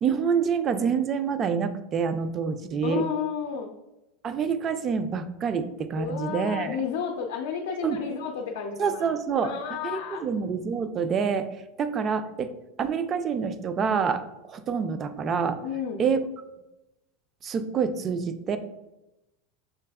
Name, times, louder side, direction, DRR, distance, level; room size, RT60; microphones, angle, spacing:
voice 1, 0.0-3.0 4.2-6.8 7.8-8.0 8.8-11.5 11.8-12.5 12.8-15.6 16.0-16.2 17.4-18.6, right 6 dB, 30° right, 10 dB, 0.4 m, -27 dB
voice 2, 2.8-3.7 6.0-9.1 9.4-10.2 15.6-16.0, left 7 dB, 80° left, 2 dB, 0.5 m, -31 dB
5.6 x 3.4 x 2.3 m, 0.94 s
supercardioid pair, 120°, 0 cm